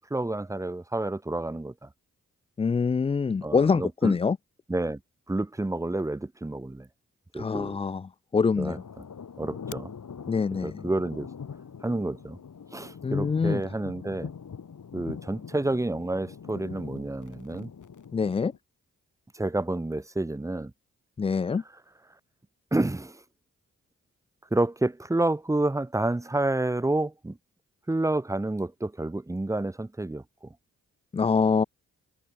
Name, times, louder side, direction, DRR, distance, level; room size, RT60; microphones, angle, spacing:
voice 1, 0.1-1.9 3.4-4.2 4.7-5.0 5.3-6.9 7.3-7.8 8.6-8.8 9.4-9.9 10.6-11.3 11.8-12.4 12.7-14.3 14.9-17.7 19.3-20.7 22.7-23.2 24.5-27.4 27.9-30.5, right 2 dB, 10° right, 0.7 m, -29 dB
voice 2, 2.6-4.4 7.3-8.8 10.3-10.9 13.0-13.6 18.1-18.5 21.2-21.6 31.1-31.6, left 5 dB, 20° left, 0.3 m, -25 dB
sound 1, 8.8-18.6, left 6 dB, 65° left, 6.2 m, -43 dB
supercardioid pair, 45°, 33 cm